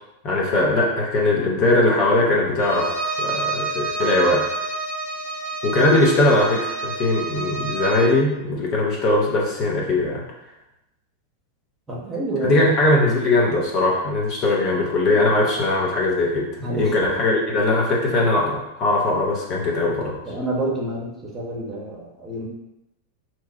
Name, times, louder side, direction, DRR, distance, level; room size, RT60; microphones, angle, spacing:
voice 1, 0.2-4.4 5.6-10.2 12.4-20.2, left 2 dB, 35° left, -3 dB, 0.9 m, -20 dB
Bowed string instrument, 2.6-8.2, right 3 dB, 60° left, 1.1 m, -28 dB
voice 2, 11.9-12.6 15.4-15.5 16.6-16.9 20.3-22.5, right 2 dB, 15° right, -3 dB, 0.9 m, -28 dB
3.0 x 2.4 x 4.3 m, 0.89 s
figure-of-eight pair, 90°, 0 cm